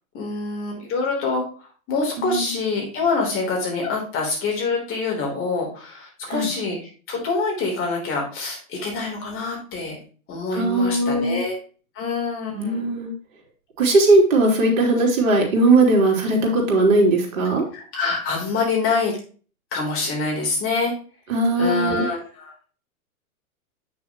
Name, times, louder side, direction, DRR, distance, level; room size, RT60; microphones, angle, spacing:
voice 1, 0.1-6.8 7.1-10.0 10.3-11.6 11.9-12.9 17.7-19.1 19.7-20.9 21.6-22.5, left 3 dB, 30° left, -1 dB, 3.4 m, -25 dB
voice 2, 2.2-2.5 6.3-6.5 10.5-11.4 12.5-13.1 13.8-17.6 21.3-22.1, right 2 dB, 65° right, 0 dB, 3.0 m, -19 dB
8.4 x 6.2 x 3.0 m, 0.38 s
hypercardioid pair, 120°, 43 cm